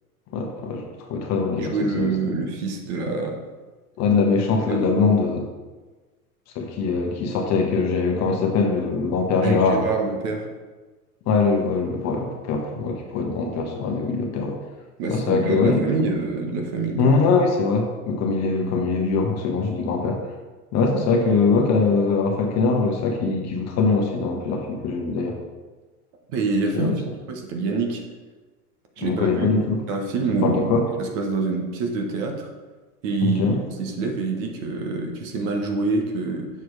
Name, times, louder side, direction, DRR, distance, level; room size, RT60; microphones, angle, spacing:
voice 1, 0.3-2.1 4.0-5.5 6.5-9.9 11.3-14.6 15.1-15.9 17.0-20.2 20.7-25.3 26.7-27.0 29.0-29.8 30.4-30.8 33.2-33.6, left 4 dB, 35° left, 2 dB, 1.3 m, -22 dB
voice 2, 1.6-3.4 4.7-4.9 9.4-10.5 15.0-17.2 26.3-26.9 27.3-28.0 29.0-29.5 29.9-32.5 33.0-33.5 33.8-36.5, right 3 dB, 45° right, 2 dB, 1.5 m, -26 dB
6.8 x 4.6 x 4.9 m, 1.3 s
hypercardioid pair, 105°, 46 cm